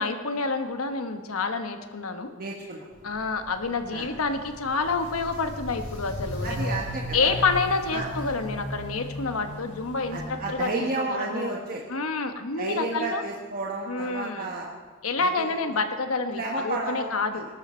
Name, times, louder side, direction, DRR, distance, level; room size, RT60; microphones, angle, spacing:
voice 1, 0.0-2.3 3.0-6.8 7.1-11.5 11.9-13.2 13.9-14.5 15.0-17.5, left 4 dB, 85° left, 7 dB, 1.2 m, -28 dB
voice 2, 2.4-3.1 3.9-4.1 6.4-7.3 7.9-8.1 10.1-11.8 12.6-14.7 15.2-15.5 16.3-17.4, right 2 dB, 45° right, -2 dB, 1.4 m, -32 dB
Walk footsteps, 2.9-10.6, equal, 30° left, 4.9 m, -36 dB
19.5 x 12.5 x 4.4 m, 1.5 s
head